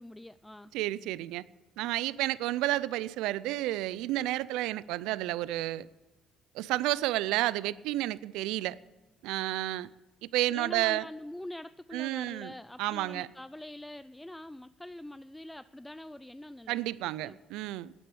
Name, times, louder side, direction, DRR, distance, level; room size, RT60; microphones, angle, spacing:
voice 1, 0.0-0.7 10.5-16.9 17.2-17.4, left 1 dB, 10° left, 0.3 m, -44 dB
voice 2, 0.7-1.4 1.8-5.9 6.5-8.8 9.2-9.9 10.2-11.1 11.9-12.5 12.8-13.3 16.7-17.9, right 16 dB, 85° right, 0.4 m, -31 dB
9.9 x 9.2 x 8.8 m
supercardioid pair, 70°, 0 cm